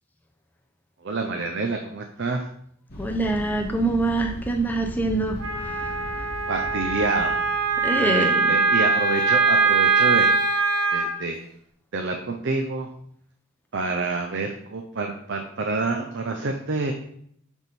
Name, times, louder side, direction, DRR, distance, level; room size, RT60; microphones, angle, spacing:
voice 1, 1.0-2.4 6.5-7.4 7.9-10.3 10.9-11.4 11.9-12.9 13.7-16.9, right 3 dB, 55° right, 4 dB, 0.6 m, -28 dB
sound 1, 2.9-8.2, equal, 45° left, 1.7 m, -38 dB
voice 2, 3.0-6.3 7.8-8.6, right 2 dB, 10° left, 2 dB, 0.7 m, -25 dB
Wind instrument woodwind instrument, 5.4-11.1, right 4 dB, 90° right, 1.1 m, -22 dB
10.5 x 3.6 x 4.1 m, 0.68 s
head